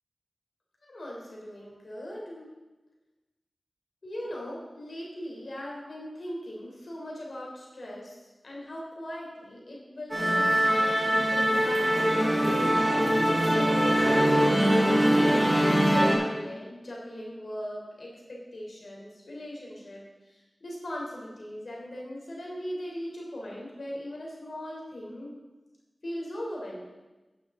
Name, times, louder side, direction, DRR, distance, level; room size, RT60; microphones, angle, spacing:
voice 1, 0.9-2.5 4.0-8.2 8.4-12.6 13.5-25.3 26.0-26.9, equal, 75° left, -3 dB, 3.6 m, -39 dB
Musical instrument, 10.1-16.1, equal, 15° right, 4.0 m, -22 dB
11.5 x 10.0 x 3.9 m, 1.1 s
wide cardioid pair, 50°, 0 cm